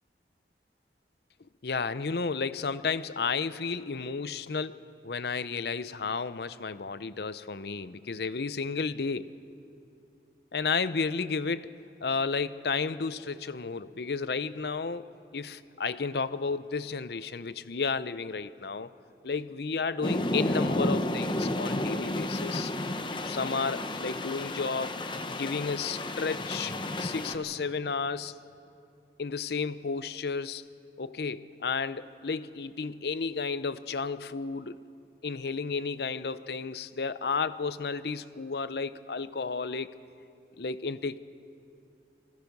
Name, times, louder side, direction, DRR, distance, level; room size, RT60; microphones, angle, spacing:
voice 1, 1.6-9.3 10.5-11.7 12.0-18.9 19.2-22.7 23.3-26.7 27.0-28.3 29.2-30.6 31.0-34.8 35.2-39.9 40.6-41.2, left 4 dB, 70° left, 14 dB, 0.6 m, -32 dB
sound 1, 20.0-27.3, left 1 dB, 25° left, 0.9 m, -32 dB
27.0 x 20.0 x 5.3 m, 2.6 s
head